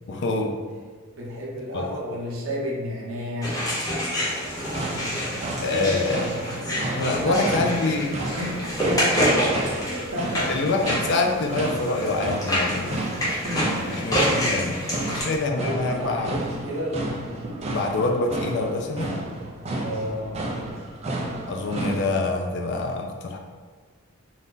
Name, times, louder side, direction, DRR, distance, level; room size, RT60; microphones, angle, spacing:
voice 1, 0.1-0.6 1.7-1.8 5.6-6.3 6.9-8.1 8.4-8.5 10.5-13.2 13.9-16.4 17.7-19.2 21.5-23.4, left 3 dB, 55° left, 2 dB, 0.4 m, -26 dB
voice 2, 1.1-3.6 6.4-10.7 13.0-14.2 15.0-17.0 19.8-20.5, equal, 65° right, -3 dB, 0.7 m, -32 dB
sound 1, 3.4-15.2, equal, 15° left, 0.6 m, -27 dB
sound 2, 4.6-22.0, right 2 dB, 30° right, 0.3 m, -32 dB
2.7 x 2.4 x 3.5 m, 1.5 s
head